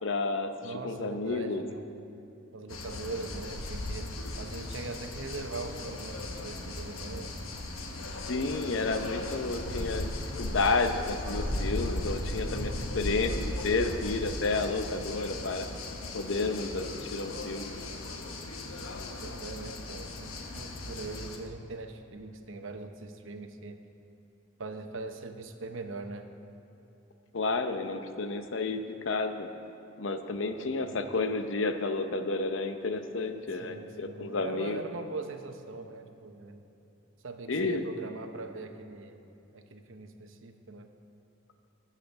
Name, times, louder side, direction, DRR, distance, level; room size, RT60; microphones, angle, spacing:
voice 1, 0.0-1.6 8.3-10.1 10.4-15.7 16.1-17.8 27.3-29.5 30.0-34.8 37.5-37.8, left 3 dB, 65° left, 7 dB, 0.7 m, -31 dB
voice 2, 0.6-2.0 2.5-4.1 4.4-7.3 12.4-13.0 19.2-23.8 24.6-26.3 30.3-31.1 33.5-36.6 37.2-39.2 39.5-40.9, right 3 dB, 70° right, 6 dB, 0.8 m, -41 dB
sound 1, 2.7-21.4, left 2 dB, 90° left, 1.1 m, -37 dB
13.5 x 5.8 x 7.0 m, 2.9 s
head